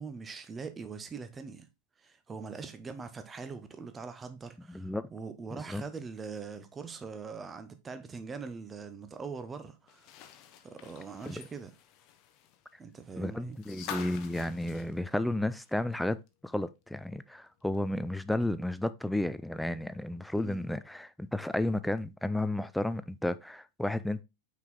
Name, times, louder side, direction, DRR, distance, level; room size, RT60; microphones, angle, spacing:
voice 1, 0.0-1.7 2.0-10.1 10.6-11.7 12.8-13.6 20.4-20.7, right 5 dB, 15° right, 0.9 m, -42 dB
voice 2, 4.7-5.1 5.5-5.8 11.3-11.4 13.1-16.2 16.4-24.2, left 1 dB, 5° left, 0.4 m, -32 dB
sound 1, 9.9-15.9 16.3-16.4 17.7-17.8, left 8 dB, 40° left, 0.8 m, -47 dB
5.8 x 4.6 x 3.6 m
figure-of-eight pair, 90°, 0 cm